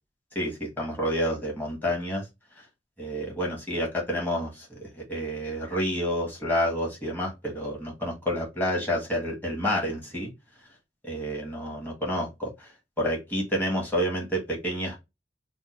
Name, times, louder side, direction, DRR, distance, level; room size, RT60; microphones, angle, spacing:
voice 1, 0.3-2.3 3.0-10.3 11.0-12.7 13.0-15.0, equal, 10° left, -2 dB, 1.3 m, -29 dB
3.5 x 2.1 x 4.3 m, 0.22 s
head